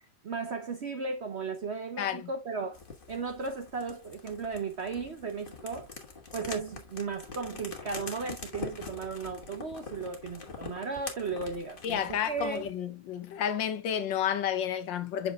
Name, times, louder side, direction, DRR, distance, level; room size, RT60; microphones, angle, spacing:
voice 1, 0.2-2.8 3.1-5.9 6.3-12.7, right 4 dB, 50° right, 0.8 m, -35 dB
voice 2, 2.0-2.3 11.8-15.3, left 9 dB, 85° left, 1.6 m, -31 dB
sound 1, 2.7-12.8, left 4 dB, 30° left, 1.5 m, -44 dB
7.9 x 6.2 x 2.2 m
omnidirectional pair, 2.0 m